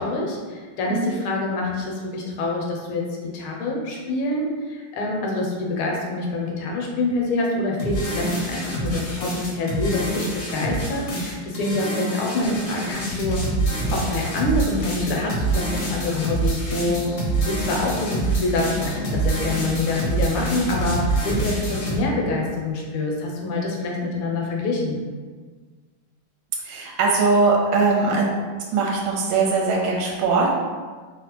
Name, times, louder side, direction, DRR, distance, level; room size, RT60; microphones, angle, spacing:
voice 1, 0.0-13.4 13.9-17.0 17.4-25.0, left 2 dB, 80° left, -1 dB, 1.5 m, -26 dB
sound 1, 7.8-22.0, right 2 dB, 65° left, 0.8 m, -26 dB
voice 2, 26.6-28.4 28.7-30.5, right 3 dB, 75° right, -2 dB, 1.3 m, -20 dB
3.4 x 2.1 x 2.9 m, 1.5 s
omnidirectional pair, 2.3 m